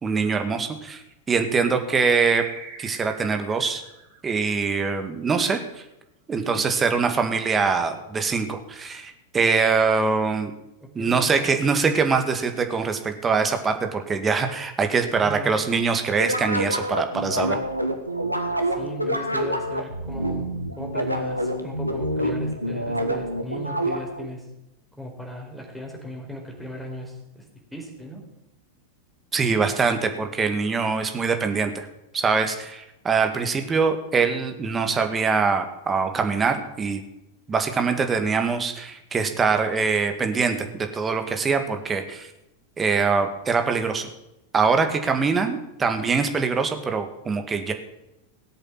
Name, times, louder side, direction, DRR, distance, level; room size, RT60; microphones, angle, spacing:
voice 1, 0.0-2.4 2.8-3.8 4.2-5.6 6.3-10.5 11.0-17.6 29.3-31.9 32.1-37.0 37.5-42.3 42.8-44.1 44.5-47.7, right 5 dB, 20° right, 6 dB, 2.0 m, -23 dB
sound 1, 2.2-5.2, right 5 dB, 50° right, 3.2 m, -42 dB
voice 2, 10.8-11.3 15.2-15.7 18.7-24.5 25.0-28.3, equal, ahead, 0 dB, 4.3 m, -37 dB
sound 2, 16.2-24.3, right 1 dB, 90° right, 1.5 m, -27 dB
18.0 x 8.1 x 7.6 m, 0.90 s
figure-of-eight pair, 90°, 0 cm